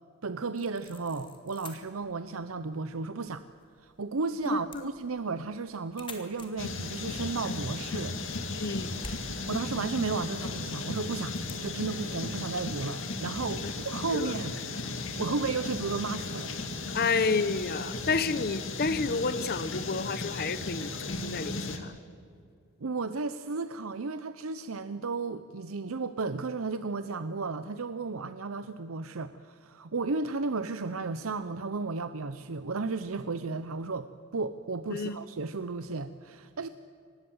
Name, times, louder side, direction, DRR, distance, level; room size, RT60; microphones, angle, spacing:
voice 1, 0.2-3.4 3.8-8.6 9.5-14.6 15.2-16.5 17.0-17.1 22.8-36.7, right 4 dB, 75° right, 11 dB, 0.7 m, -34 dB
sound 1, 0.5-11.7, left 3 dB, 25° left, 2.9 m, -51 dB
sound 2, 6.6-21.8, left 3 dB, 60° left, 2.4 m, -36 dB
voice 2, 8.6-8.9 13.6-13.7 14.1-14.3 16.9-22.0 34.9-35.2, left 4 dB, 45° left, 15 dB, 0.8 m, -30 dB
25.5 x 20.0 x 8.0 m, 2.3 s
head